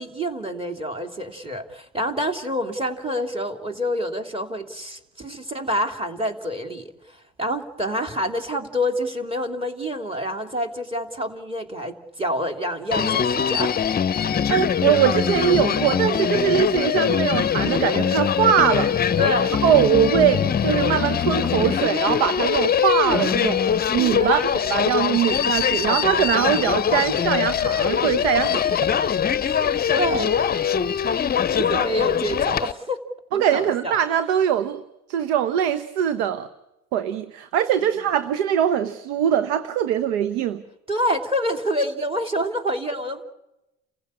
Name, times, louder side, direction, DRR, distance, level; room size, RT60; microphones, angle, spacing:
voice 1, 0.0-13.8 19.2-19.5 24.2-24.4 28.4-28.5 29.4-30.3 31.5-33.0 33.3-34.0 40.9-43.2, equal, 15° right, 3.1 m, -27 dB
Human voice, 12.9-32.7, left 8 dB, 30° left, 0.8 m, -22 dB
voice 2, 14.3-18.9 19.6-23.6 23.9-28.6 33.3-34.8 35.1-36.5 36.9-40.6, right 9 dB, 85° right, 1.1 m, -22 dB
29.5 x 15.5 x 8.6 m
supercardioid pair, 80°, 32 cm